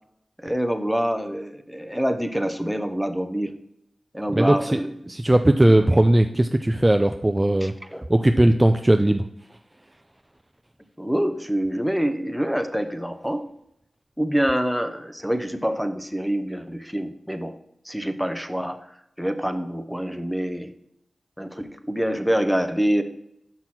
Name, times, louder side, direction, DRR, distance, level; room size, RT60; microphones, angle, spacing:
voice 1, 0.4-3.5 4.1-5.1 5.8-6.0 7.6-8.1 11.0-13.5 14.2-17.5 17.8-18.9 19.2-20.7 21.4-23.0, equal, ahead, 8 dB, 0.8 m, -26 dB
voice 2, 4.3-4.8 5.1-7.7 8.1-9.2, right 1 dB, 20° right, 7 dB, 0.4 m, -18 dB
6.0 x 5.7 x 4.4 m, 0.78 s
cardioid pair, 45°, 0 cm